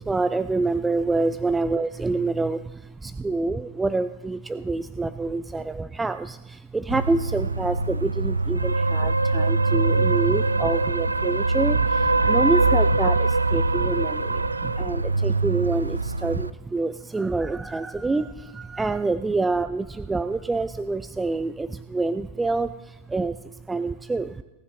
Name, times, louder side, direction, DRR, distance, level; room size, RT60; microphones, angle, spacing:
voice 1, 0.0-23.4 23.7-24.4, right 3 dB, 10° right, 13 dB, 0.3 m, -27 dB
sound 1, 6.9-16.5, right 3 dB, 80° right, 0.4 m, -23 dB
19.0 x 10.0 x 3.2 m, 1.1 s
figure-of-eight pair, 90°, 0 cm